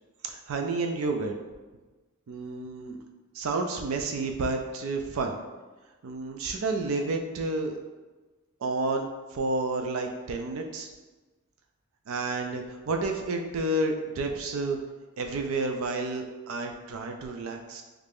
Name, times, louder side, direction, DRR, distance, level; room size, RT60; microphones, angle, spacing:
voice 1, 0.2-1.4 2.3-3.0 3.3-5.4 6.0-7.7 8.6-9.1 9.3-10.9 12.1-14.8 15.2-17.8, right 3 dB, 75° right, 4 dB, 0.4 m, -30 dB
3.2 x 2.5 x 3.4 m, 1.2 s
head